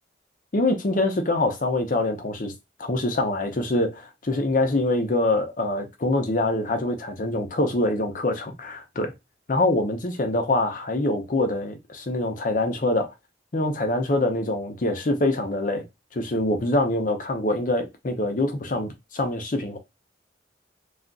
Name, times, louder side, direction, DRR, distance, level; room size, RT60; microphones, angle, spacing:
voice 1, 0.5-2.5 2.8-9.1 9.5-13.1 13.5-15.8 16.1-19.8, left 2 dB, 45° left, 0.6 m, -24 dB
2.4 x 2.3 x 3.7 m
head